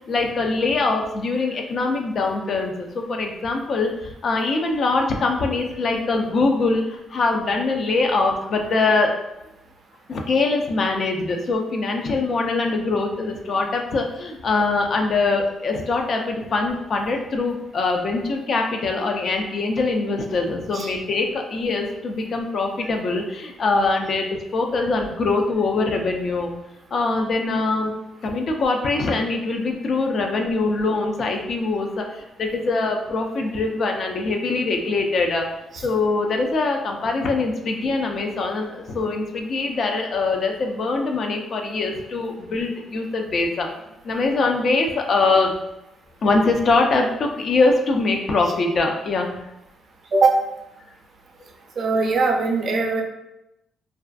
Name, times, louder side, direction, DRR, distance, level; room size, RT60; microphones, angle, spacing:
voice 1, 0.1-9.2 10.1-26.5 26.9-27.9 28.2-35.5 35.8-43.7 44.0-45.5 46.2-49.3, left 3 dB, 55° left, 3 dB, 0.4 m, -23 dB
voice 2, 51.8-53.0, right 3 dB, 55° right, 2 dB, 0.4 m, -20 dB
2.4 x 2.3 x 2.3 m, 0.90 s
cardioid pair, 90°, 0 cm